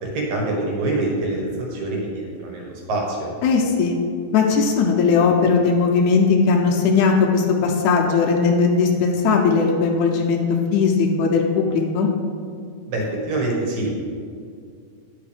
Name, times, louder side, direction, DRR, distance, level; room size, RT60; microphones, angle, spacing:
voice 1, 0.0-3.3 12.9-13.9, right 2 dB, 65° right, -1 dB, 2.5 m, -25 dB
voice 2, 3.4-3.9 4.3-10.4 10.7-12.1, left 5 dB, 75° left, 0 dB, 1.9 m, -18 dB
10.5 x 4.7 x 3.4 m, 2.2 s
omnidirectional pair, 3.7 m